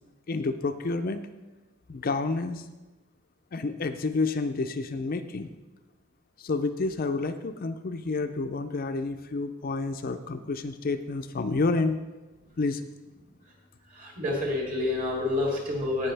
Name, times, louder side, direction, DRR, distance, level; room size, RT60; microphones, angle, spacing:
voice 1, 0.3-1.3 1.9-2.6 3.5-5.5 6.4-12.0 12.6-12.8, left 3 dB, 45° left, 8 dB, 0.5 m, -29 dB
voice 2, 14.0-16.1, left 2 dB, 40° right, -2 dB, 2.8 m, -28 dB
16.5 x 6.0 x 3.3 m, 1.1 s
head